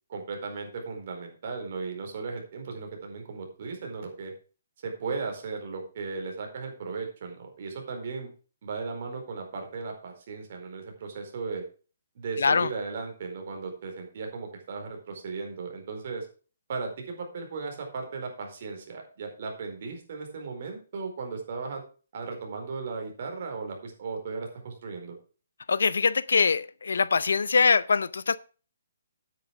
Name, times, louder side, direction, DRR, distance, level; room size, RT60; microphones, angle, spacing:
voice 1, 0.1-4.3 4.8-8.3 8.6-11.6 12.1-16.3 16.7-21.8 22.1-25.2, right 4 dB, 50° right, 4.5 m, -36 dB
voice 2, 12.4-12.7 25.7-28.4, left 5 dB, 80° left, 0.6 m, -23 dB
9.2 x 9.1 x 4.8 m
hypercardioid pair, 155°, 0 cm